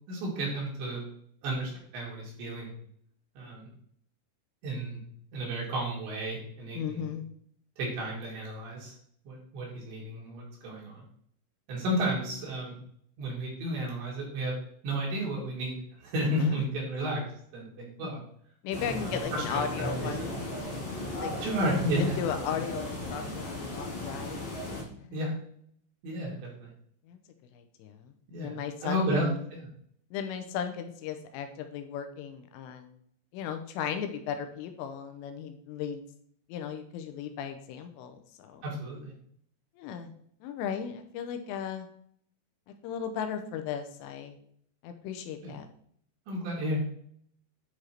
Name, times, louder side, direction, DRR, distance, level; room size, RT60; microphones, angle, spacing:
voice 1, 0.1-1.1 1.4-2.7 3.4-3.7 4.6-5.0 5.3-7.0 7.8-9.0 9.3-11.0 11.7-12.7 13.2-14.5 14.8-17.2 17.5-18.2 18.8-20.3 21.4-22.1 25.1-25.3 26.0-26.7 28.3-29.7 38.6-39.1 45.4-45.5 46.3-46.8, right 1 dB, 65° right, -4 dB, 4.4 m, -32 dB
voice 2, 6.7-7.3 16.4-16.6 18.6-20.3 21.2-21.3 21.6-21.7 22.0-24.4 25.0-25.2 27.1-27.2 27.5-29.4 30.1-33.0 33.3-36.0 36.5-38.7 39.8-40.1 40.4-41.9 42.8-44.4 44.8-45.7, left 8 dB, 85° left, 7 dB, 3.3 m, -36 dB
sound 1, 18.7-24.8, left 2 dB, 50° left, 1.5 m, -36 dB
9.5 x 4.9 x 4.4 m, 0.64 s
omnidirectional pair, 5.7 m